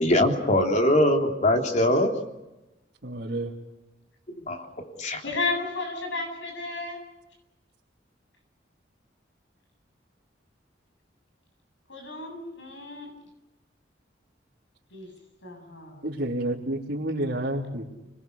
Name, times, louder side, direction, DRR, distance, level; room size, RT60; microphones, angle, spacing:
voice 1, 0.0-2.1 4.5-5.2, left 1 dB, 40° left, 3 dB, 3.4 m, -22 dB
voice 2, 3.0-3.5 16.0-17.9, right 1 dB, 60° right, -6 dB, 3.5 m, -29 dB
voice 3, 5.2-7.0 11.9-13.1 14.9-15.1 15.4-16.0, left 3 dB, 80° left, 3 dB, 7.8 m, -33 dB
30.0 x 21.0 x 6.7 m, 1.0 s
head